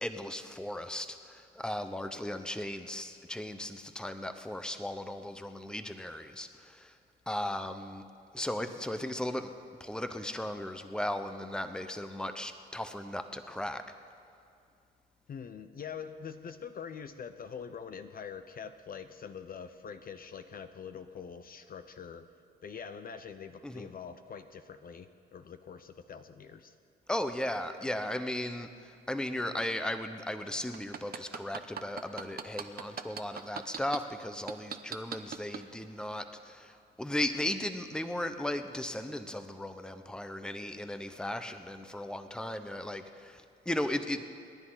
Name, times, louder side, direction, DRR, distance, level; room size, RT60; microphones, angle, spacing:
voice 1, 0.0-6.9 7.3-8.0 8.3-9.5 9.8-13.8 23.6-23.9 27.1-28.7 29.1-44.2, left 1 dB, 5° left, 8 dB, 0.9 m, -36 dB
voice 2, 15.3-22.3 22.6-26.8, left 6 dB, 45° left, 9 dB, 0.8 m, -44 dB
sound 1, 30.7-34.0 34.5-35.6 36.1-36.2, right 7 dB, 50° right, 0.9 m, -38 dB
28.0 x 10.5 x 4.0 m, 2.4 s
cardioid pair, 90°, 20 cm